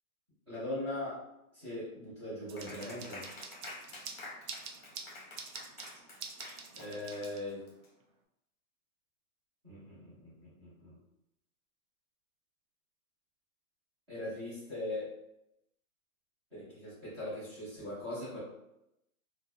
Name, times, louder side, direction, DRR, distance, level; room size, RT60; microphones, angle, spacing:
voice 1, 0.5-1.2 1.5-3.2 6.7-7.6 9.6-11.0 14.1-15.1 16.5-18.4, left 1 dB, 20° right, -12 dB, 0.7 m, -40 dB
sound 1, 2.5-7.7, right 5 dB, 75° right, 0.6 m, -47 dB
Clapping, 2.6-7.9, left 2 dB, 40° left, 0.7 m, -49 dB
2.3 x 2.1 x 2.6 m, 0.85 s
hypercardioid pair, 175°, 44 cm